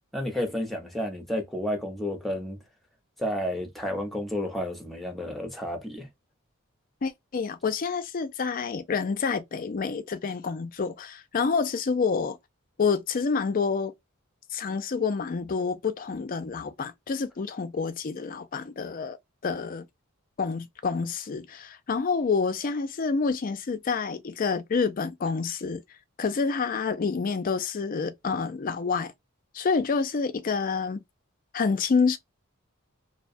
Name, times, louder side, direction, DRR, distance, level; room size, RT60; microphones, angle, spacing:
voice 1, 0.1-2.6 3.2-6.1, left 1 dB, ahead, 0.7 m, -31 dB
voice 2, 7.0-12.4 12.8-13.9 14.5-19.2 19.4-19.9 20.4-25.8 26.2-29.1 29.5-31.0 31.5-32.2, left 5 dB, 40° left, 0.4 m, -28 dB
2.7 x 2.2 x 2.5 m
head